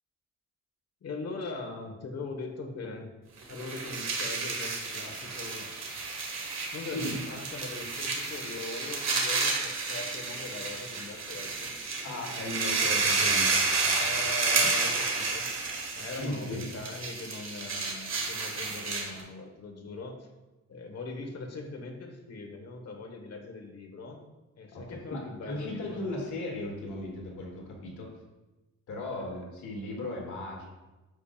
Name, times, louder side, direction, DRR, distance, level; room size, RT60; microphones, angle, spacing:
voice 1, 1.0-3.1 3.5-5.7 6.7-11.7 13.9-20.3 20.7-24.2 24.6-26.1 29.0-29.5, left 3 dB, 55° left, 3 dB, 1.5 m, -41 dB
sound 1, 3.4-19.2, right 4 dB, 65° right, 1.9 m, -31 dB
voice 2, 12.0-14.3 16.2-16.7 24.7-28.1 28.9-30.7, left 2 dB, 85° left, -2 dB, 2.4 m, -37 dB
9.7 x 7.2 x 2.5 m, 1.1 s
cardioid pair, 125°, 29 cm